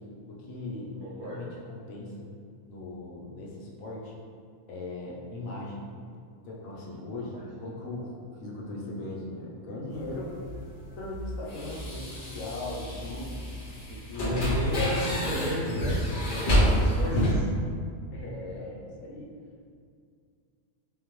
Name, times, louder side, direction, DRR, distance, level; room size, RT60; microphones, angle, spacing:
voice 1, 0.3-1.0 1.2-2.3 2.7-4.1 4.7-5.9 6.4-10.4 11.0-13.4 13.9-14.9 18.1-19.3, left 2 dB, 80° left, -4 dB, 1.2 m, -39 dB
voice 2, 1.0-1.4 7.3-7.4 14.2-17.4, left 1 dB, 45° right, -6 dB, 1.0 m, -32 dB
sound 1, 9.9-17.3, equal, 45° left, 0.9 m, -29 dB
4.1 x 3.7 x 3.0 m, 2.2 s
omnidirectional pair, 1.4 m